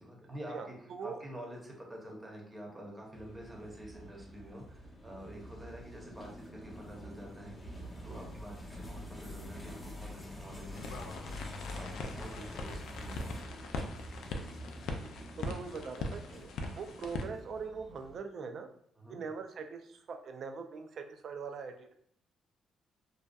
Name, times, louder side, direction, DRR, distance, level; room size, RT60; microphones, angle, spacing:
voice 1, 0.0-0.7 1.0-11.4 11.7-13.3 19.0-19.2, equal, 15° right, -1 dB, 0.8 m, -48 dB
voice 2, 0.5-1.2 12.4-12.5 15.0-15.1 15.4-18.7 19.1-21.9, right 5 dB, 60° right, 6 dB, 0.3 m, -42 dB
sound 1, 3.1-18.2, left 1 dB, 25° left, 0.6 m, -46 dB
sound 2, 10.7-17.2, left 2 dB, 80° left, 0.3 m, -41 dB
2.6 x 2.2 x 2.3 m, 0.66 s
cardioid pair, 90°, 0 cm